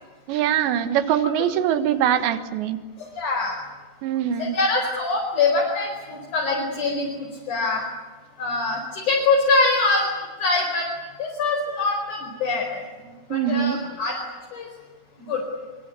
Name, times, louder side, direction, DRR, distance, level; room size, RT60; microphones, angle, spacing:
voice 1, 0.3-2.8 4.0-4.6 13.3-13.8, right 10 dB, 85° right, 10 dB, 3.8 m, -23 dB
voice 2, 3.1-3.6 4.4-7.8 8.4-10.1 10.4-10.9 11.2-12.8 13.3-14.2 14.5-14.7 15.2-15.4, left 3 dB, 45° left, -1 dB, 6.2 m, -23 dB
24.5 x 24.5 x 9.9 m, 1.3 s
omnidirectional pair, 4.9 m